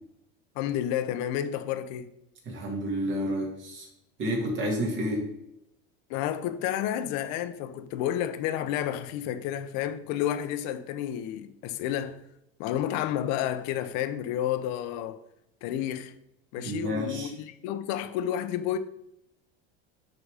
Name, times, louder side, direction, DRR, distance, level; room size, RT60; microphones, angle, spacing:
voice 1, 0.6-2.1 6.1-12.2 12.6-15.2 15.6-16.1 16.5-18.8, left 11 dB, 65° left, 0.8 m, -30 dB
voice 2, 2.5-3.9 4.2-5.3 16.6-17.3, equal, 40° right, 2.6 m, -30 dB
10.0 x 4.0 x 4.9 m
supercardioid pair, 125°, 30 cm